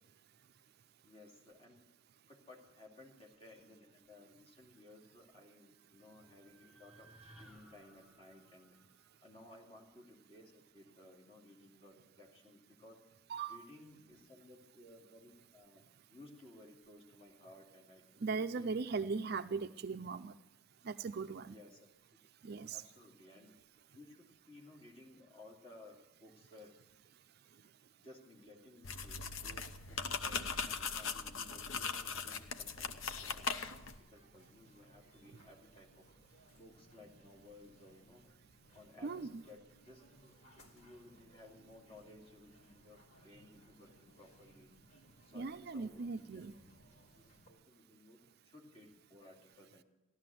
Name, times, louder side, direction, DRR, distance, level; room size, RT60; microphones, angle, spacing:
voice 1, 1.0-1.8 2.3-8.8 9.2-13.0 13.5-18.7 19.0-19.2 21.5-22.2 22.7-23.6 23.9-26.8 28.0-36.0 36.6-38.2 38.7-44.7 45.3-46.6 47.1-48.2 48.4-49.8, left 2 dB, 25° left, -1 dB, 2.6 m, -58 dB
sound 1, 5.6-9.9, right 1 dB, 5° right, 3.0 m, -62 dB
voice 2, 18.2-20.3 20.8-21.6 22.4-22.8 39.0-39.4 45.3-46.5, right 4 dB, 45° right, 10 dB, 0.4 m, -39 dB
sound 2, 28.8-34.0, left 5 dB, 65° left, 0.9 m, -40 dB
sound 3, 29.3-47.5, equal, 85° left, 3.3 m, -64 dB
15.5 x 12.0 x 7.6 m, 1.0 s
head